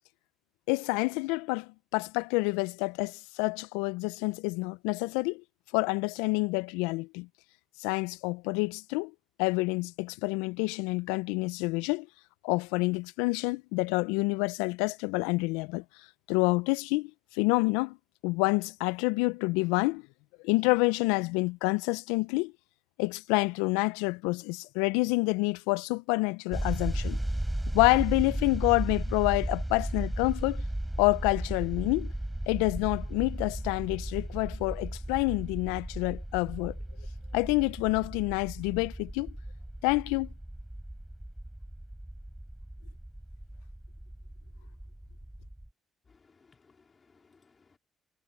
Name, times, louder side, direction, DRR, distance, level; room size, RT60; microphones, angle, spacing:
voice 1, 0.7-5.4 5.7-7.3 7.8-9.1 9.4-12.1 12.4-15.8 16.3-18.0 18.2-20.0 20.4-22.5 23.0-27.2 27.7-30.6 31.0-32.1 32.5-36.8 37.3-39.3 39.8-40.3, left 26 dB, 80° left, 1.1 m, -28 dB
sound 1, 26.5-45.7, right 1 dB, 10° right, 7.7 m, -36 dB
voice 2, 46.1-47.8, left 4 dB, 40° left, 4.1 m, -63 dB
hypercardioid pair, 45°, 0 cm